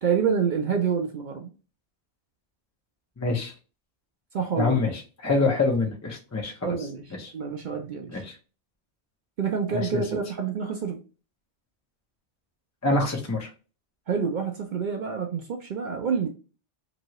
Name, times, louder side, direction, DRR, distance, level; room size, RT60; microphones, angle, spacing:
voice 1, 0.0-1.5 4.3-4.8 6.6-7.0 7.3-8.2 9.4-11.0 14.1-16.3, right 6 dB, 60° right, 0.5 m, -27 dB
voice 2, 3.2-3.5 4.6-6.7 7.2-7.3 8.1-8.3 9.7-10.0 12.8-13.5, left 3 dB, 25° left, 0.4 m, -26 dB
3.0 x 2.7 x 2.9 m
omnidirectional pair, 1.2 m